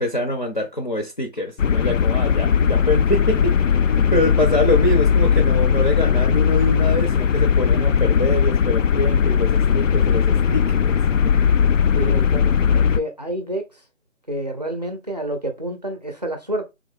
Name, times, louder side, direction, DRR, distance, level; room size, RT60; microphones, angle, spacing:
voice 1, 0.0-3.5 3.8-11.0 11.2-11.3, left 1 dB, 35° left, 0.7 m, -24 dB
sound 1, 1.6-13.0, left 7 dB, 70° left, 0.5 m, -18 dB
voice 2, 11.9-13.7 14.3-16.7, right 1 dB, 30° right, 0.6 m, -28 dB
3.6 x 2.9 x 3.5 m
figure-of-eight pair, 170°, 40 cm